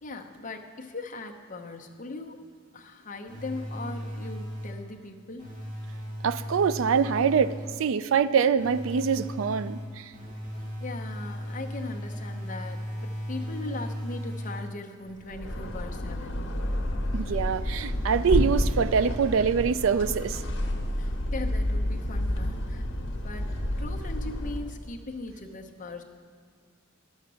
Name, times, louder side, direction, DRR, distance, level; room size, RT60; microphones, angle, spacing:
voice 1, 0.0-2.5 2.7-5.5 10.8-16.6 21.0-22.9 23.2-23.5 23.8-26.0, left 2 dB, 40° left, 4 dB, 0.8 m, -39 dB
sound 1, 3.3-4.9 5.4-7.9 8.6-15.0, equal, 40° right, 2.2 m, -36 dB
voice 2, 6.2-10.1 17.1-20.4, right 6 dB, 75° right, 15 dB, 0.4 m, -24 dB
sound 2, 15.2-24.8, left 1 dB, 65° left, 1.2 m, -29 dB
11.5 x 7.3 x 6.1 m, 2.2 s
head